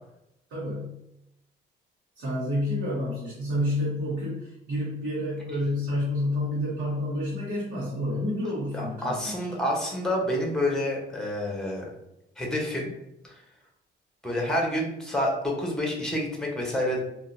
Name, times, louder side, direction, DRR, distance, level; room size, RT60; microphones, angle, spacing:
voice 1, 0.5-0.9 2.2-9.6, left 1 dB, 85° right, -8 dB, 1.2 m, -29 dB
voice 2, 8.7-11.8 12.4-12.9 13.2-13.3 14.2-17.0, left 1 dB, 5° left, -1 dB, 1.0 m, -28 dB
3.6 x 2.5 x 2.7 m, 0.83 s
cardioid pair, 90°, 20 cm